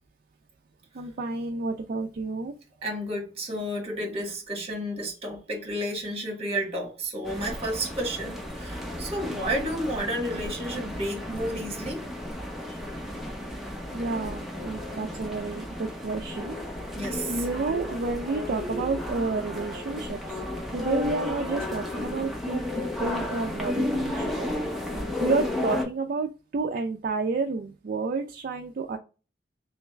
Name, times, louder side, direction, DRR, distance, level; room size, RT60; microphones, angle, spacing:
voice 1, 0.9-2.5 13.9-16.6 17.3-20.4 20.7-24.5 25.2-29.0, right 3 dB, 50° right, 0.4 m, -30 dB
voice 2, 2.8-12.0 16.9-17.3, right 1 dB, 35° right, 1.3 m, -31 dB
sound 1, 7.2-25.8, left 1 dB, ahead, 0.8 m, -33 dB
3.4 x 3.1 x 3.1 m
head